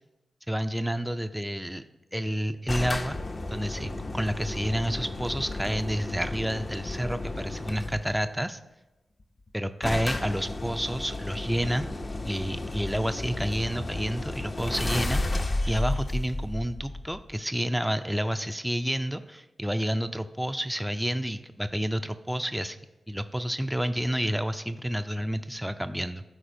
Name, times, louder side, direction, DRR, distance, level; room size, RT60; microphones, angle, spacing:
voice 1, 0.5-1.8 2.1-3.2 3.5-8.6 9.5-11.9 12.2-22.8 23.1-26.2, equal, 5° right, 9 dB, 0.4 m, -30 dB
sound 1, 2.7-8.2 9.2-9.3 9.5-9.6 9.8-17.3, left 2 dB, 45° left, 0.6 m, -33 dB
12.5 x 4.3 x 2.6 m, 1.0 s
cardioid pair, 50°, 0 cm